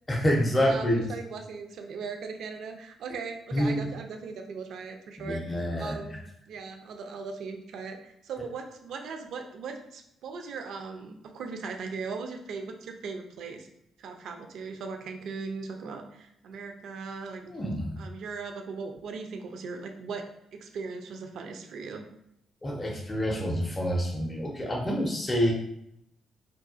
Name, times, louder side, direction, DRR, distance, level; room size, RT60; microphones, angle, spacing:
voice 1, 0.1-1.1 3.5-3.9 5.2-6.0 17.4-18.0 22.6-25.5, equal, 20° left, 0 dB, 0.5 m, -27 dB
voice 2, 0.6-13.7 14.0-17.4 18.0-20.2 20.5-22.1, right 4 dB, 55° right, 4 dB, 0.3 m, -39 dB
3.9 x 2.3 x 2.4 m, 0.78 s
figure-of-eight pair, 40°, 0 cm